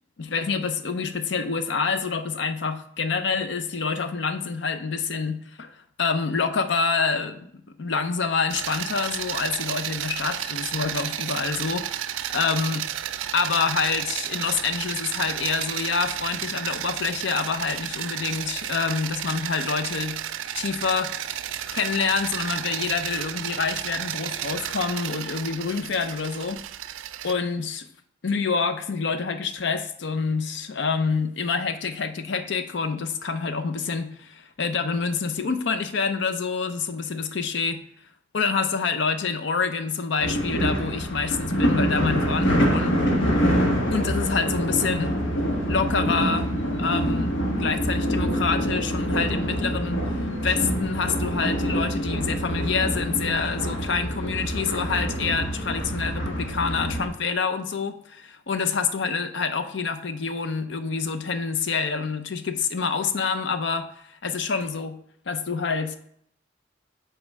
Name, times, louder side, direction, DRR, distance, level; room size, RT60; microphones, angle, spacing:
voice 1, 0.2-5.7 6.0-7.5 7.8-12.8 13.3-20.2 20.5-21.1 21.7-26.6 27.2-27.9 28.2-37.8 38.3-43.0 43.9-45.2 45.7-65.0 65.3-66.0, left 5 dB, 70° left, 10 dB, 0.6 m, -27 dB
sound 1, 8.5-27.3, right 11 dB, 90° right, 0.4 m, -32 dB
sound 2, 40.2-57.1, equal, 85° left, 1.4 m, -25 dB
5.4 x 4.3 x 6.0 m, 0.67 s
head